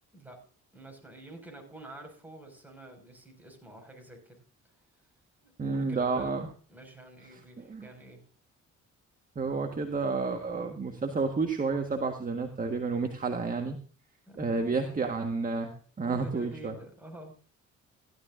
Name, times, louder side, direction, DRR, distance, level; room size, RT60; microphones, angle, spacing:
voice 1, 0.7-4.4 4.7-4.8 5.4-6.3 6.7-8.2 14.3-15.1 16.0-17.3, right 1 dB, 5° right, 2 dB, 5.7 m, -48 dB
voice 2, 5.6-6.5 7.7-7.9 9.3-13.8 14.4-15.7 16.0-16.7, right 4 dB, 30° right, 4 dB, 1.6 m, -30 dB
15.5 x 12.5 x 2.6 m, 0.43 s
cardioid pair, 90°, 30 cm